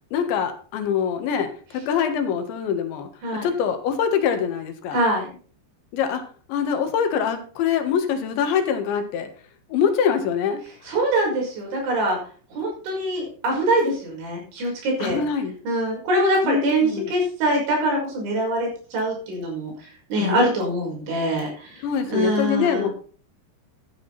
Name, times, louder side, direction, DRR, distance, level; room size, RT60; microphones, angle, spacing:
voice 1, 0.1-3.1 3.4-5.0 5.9-6.2 6.5-9.3 9.7-10.6 15.0-15.5 16.4-17.1 20.2-20.4 21.8-22.9, left 7 dB, 80° left, 7 dB, 4.0 m, -24 dB
voice 2, 4.9-5.3 10.8-12.2 12.5-15.2 15.6-22.9, right 1 dB, 85° right, 0 dB, 8.1 m, -24 dB
14.0 x 9.8 x 4.2 m, 0.41 s
omnidirectional pair, 5.2 m